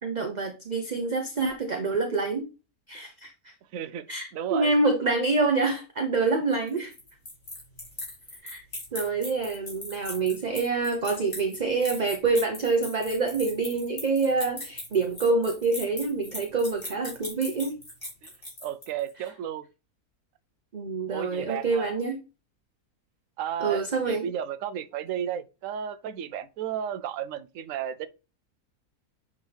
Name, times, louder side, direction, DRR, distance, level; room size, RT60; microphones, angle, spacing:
voice 1, 0.0-2.4 2.9-3.5 4.1-6.9 8.4-8.6 8.9-17.7 20.7-22.2 23.6-24.3, right 3 dB, 35° right, 0.8 m, -26 dB
voice 2, 3.7-4.1 4.3-4.7 18.2-18.3 18.6-19.7 21.1-21.9 23.4-28.1, right 9 dB, 65° right, 0.9 m, -33 dB
sound 1, 6.5-19.1, left 1 dB, 35° left, 4.1 m, -39 dB
10.5 x 3.7 x 3.4 m
omnidirectional pair, 1.6 m